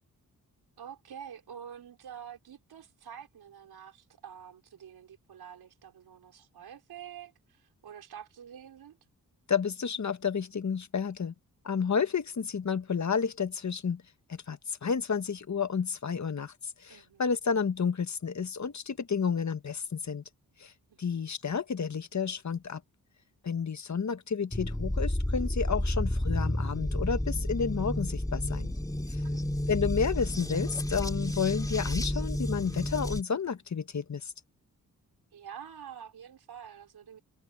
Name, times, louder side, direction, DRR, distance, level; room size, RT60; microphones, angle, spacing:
voice 1, 0.8-9.0 16.9-17.3 20.9-21.2 29.2-29.4 35.3-37.2, right 8 dB, 85° right, 4.3 m, -47 dB
voice 2, 9.5-11.3 11.6-14.0 14.3-20.2 20.6-20.7 21.0-22.8 23.4-28.7 29.1-29.2 29.7-34.3, left 6 dB, 50° left, 1.5 m, -31 dB
sound 1, 24.5-33.2, left 1 dB, 10° left, 2.9 m, -31 dB
cardioid pair, 50°, 37 cm